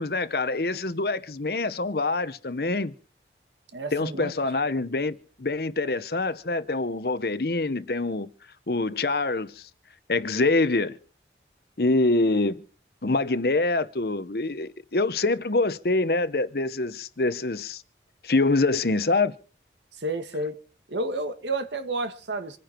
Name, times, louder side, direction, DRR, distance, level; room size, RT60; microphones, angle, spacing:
voice 1, 0.0-2.9 3.9-8.3 8.7-9.7 10.1-11.0 11.8-12.6 13.0-17.8 18.2-19.3, left 2 dB, 60° left, 0.9 m, -25 dB
voice 2, 3.7-4.3 20.0-20.6 20.9-22.6, right 2 dB, 85° right, 1.6 m, -30 dB
26.5 x 10.5 x 4.5 m
head